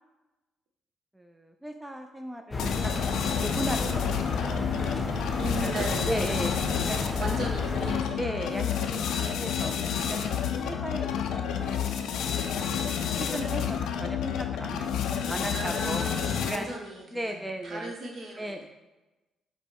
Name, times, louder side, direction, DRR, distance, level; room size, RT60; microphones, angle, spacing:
voice 1, 1.1-2.7 3.4-5.0 5.6-6.5 6.9-7.4 8.2-9.8 10.1-10.4 10.6-11.9 12.6-14.9 15.3-16.0 16.4-16.7 17.1-17.9 18.4-18.6, equal, 5° right, 5 dB, 0.3 m, -36 dB
sound 1, 2.5-8.0, left 2 dB, 30° left, 0.6 m, -32 dB
sound 2, 2.6-16.8, left 8 dB, 80° left, 0.4 m, -30 dB
voice 2, 5.4-6.4 7.2-8.4 15.5-18.6, right 2 dB, 55° right, 1 dB, 0.9 m, -37 dB
5.2 x 2.1 x 4.5 m, 1.1 s
cardioid pair, 90°, 0 cm